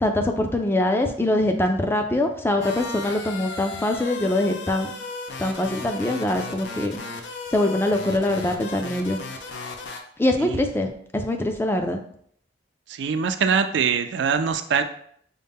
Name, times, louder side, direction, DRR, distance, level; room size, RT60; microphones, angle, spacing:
voice 1, 0.0-4.9 5.4-7.0 7.5-9.2 10.2-12.0, left 1 dB, 15° left, 4 dB, 0.4 m, -23 dB
sound 1, 2.6-10.0, left 3 dB, 75° left, 0.5 m, -36 dB
voice 2, 10.4-10.7 12.9-14.8, right 6 dB, 75° right, 8 dB, 0.4 m, -23 dB
5.3 x 2.1 x 3.4 m, 0.63 s
head